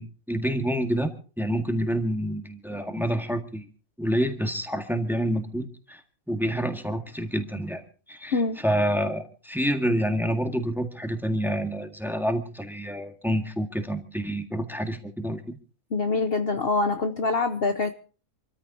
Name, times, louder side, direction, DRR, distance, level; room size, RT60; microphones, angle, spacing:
voice 1, 0.0-3.7 4.0-6.0 6.3-7.8 8.1-15.6, equal, ahead, 5 dB, 1.7 m, -28 dB
voice 2, 15.9-17.9, left 3 dB, 50° left, 6 dB, 1.0 m, -25 dB
28.0 x 14.0 x 2.8 m, 0.38 s
omnidirectional pair, 1.4 m